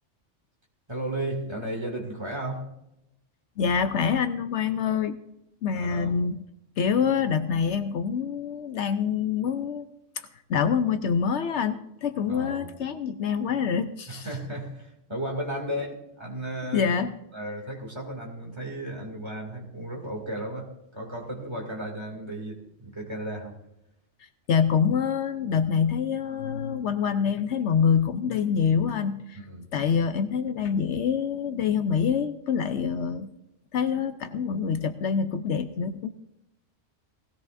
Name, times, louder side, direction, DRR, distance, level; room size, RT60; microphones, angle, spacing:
voice 1, 0.9-2.7 5.7-6.2 12.3-12.7 14.1-16.9 17.3-23.6 29.3-29.7, right 1 dB, 20° right, 0 dB, 2.5 m, -34 dB
voice 2, 3.6-5.2 5.6-6.4 6.8-9.8 10.2-14.3 16.7-17.1 24.5-29.4 29.7-33.3 33.7-36.1, left 7 dB, 70° left, 9 dB, 0.9 m, -26 dB
19.5 x 16.5 x 2.6 m, 0.87 s
omnidirectional pair, 1.3 m